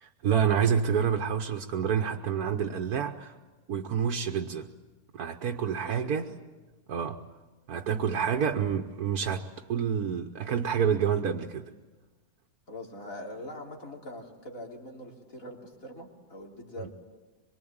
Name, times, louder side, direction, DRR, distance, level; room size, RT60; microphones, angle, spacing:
voice 1, 0.0-3.3 3.7-4.7 5.1-6.3 6.9-7.2 7.7-11.7, right 7 dB, 90° right, 1.5 m, -28 dB
voice 2, 5.8-6.2 8.1-8.2 12.7-16.9, left 1 dB, 65° left, 3.8 m, -43 dB
25.0 x 23.0 x 8.7 m
omnidirectional pair, 1.5 m